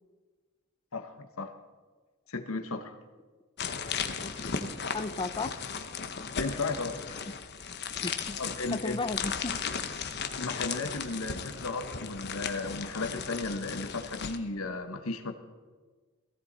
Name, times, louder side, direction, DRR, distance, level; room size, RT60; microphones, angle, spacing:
voice 1, 0.9-1.5 2.3-2.9 6.4-7.0 8.4-9.0 10.4-15.3, left 3 dB, 90° left, 7 dB, 1.2 m, -35 dB
sound 1, 3.6-14.4, left 6 dB, 55° left, 1.0 m, -36 dB
voice 2, 4.2-5.6 8.0-8.4 8.7-9.6 10.0-10.2, left 3 dB, 25° left, 13 dB, 0.5 m, -36 dB
17.5 x 15.5 x 4.1 m, 1.4 s
head